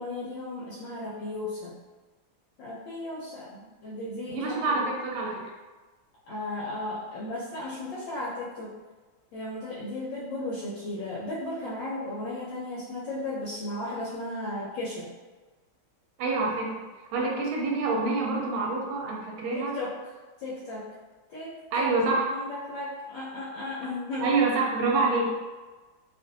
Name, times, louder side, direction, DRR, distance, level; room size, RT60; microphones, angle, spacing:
voice 1, 0.0-1.7 2.6-4.8 6.3-8.7 9.3-15.1 19.5-19.9 20.4-20.9 21.3-21.9 22.3-24.3, left 2 dB, 70° left, -7 dB, 1.2 m, -35 dB
voice 2, 4.3-5.4 16.2-16.8 17.1-19.8 21.7-22.3 24.2-25.3, right 3 dB, 90° right, -1 dB, 1.4 m, -26 dB
3.2 x 2.5 x 2.5 m, 1.3 s
omnidirectional pair, 2.2 m